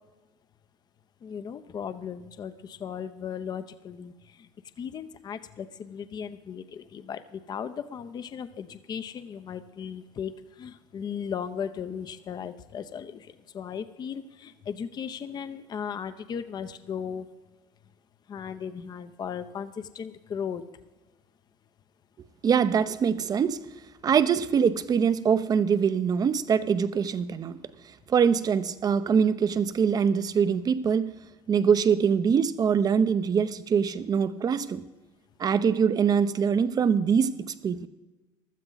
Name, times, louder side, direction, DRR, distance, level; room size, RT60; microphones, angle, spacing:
voice 1, 1.2-4.1 4.8-10.3 10.6-17.3 18.3-20.6, left 7 dB, 40° left, 0.8 m, -36 dB
voice 2, 22.4-23.7 24.0-27.6 28.1-31.1 31.5-34.9 35.4-37.9, right 7 dB, 35° right, 0.8 m, -23 dB
16.0 x 12.0 x 4.0 m
supercardioid pair, 100°, 11 cm